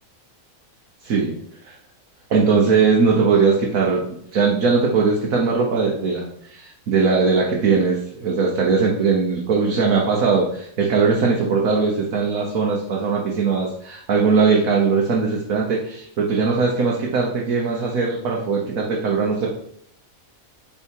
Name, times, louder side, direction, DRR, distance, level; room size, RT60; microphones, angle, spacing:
voice 1, 1.0-1.4 1.6-1.7 2.3-19.5, right 4 dB, 75° right, -2 dB, 1.5 m, -20 dB
7.2 x 4.3 x 4.6 m, 0.68 s
omnidirectional pair, 1.5 m